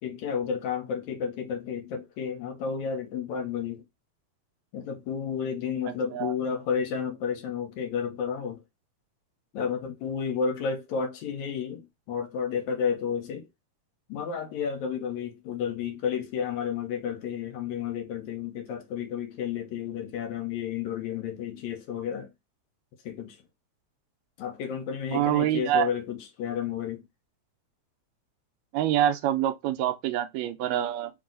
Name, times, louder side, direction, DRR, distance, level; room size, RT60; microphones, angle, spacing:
voice 1, 0.0-3.8 4.7-8.6 9.5-13.5 14.1-22.3 23.1-23.4 24.4-27.0, left 7 dB, 75° left, 2.2 m, -31 dB
voice 2, 25.1-25.9 28.7-31.1, right 11 dB, 80° right, 1.6 m, -26 dB
4.6 x 2.8 x 3.7 m
omnidirectional pair, 3.4 m